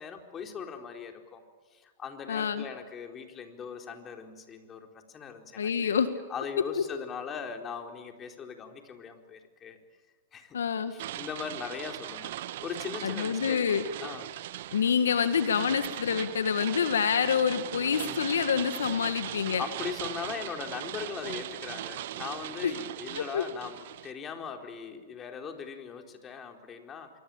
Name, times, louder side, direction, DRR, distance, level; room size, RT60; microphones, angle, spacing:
voice 1, 0.0-1.4 1.7-6.0 6.3-9.8 10.3-10.6 10.9-12.4 12.6-14.3 17.7-18.2 19.6-27.1, left 7 dB, 25° left, 4 dB, 4.2 m, -40 dB
voice 2, 2.3-2.6 5.6-6.1 10.5-10.9 13.0-13.8 14.7-19.6 22.6-22.7 23.3-23.4, left 7 dB, 80° left, 10 dB, 1.8 m, -27 dB
sound 1, 11.0-24.1, right 13 dB, 60° right, 1.3 m, -39 dB
26.5 x 23.5 x 8.9 m, 1.5 s
hypercardioid pair, 115°, 0 cm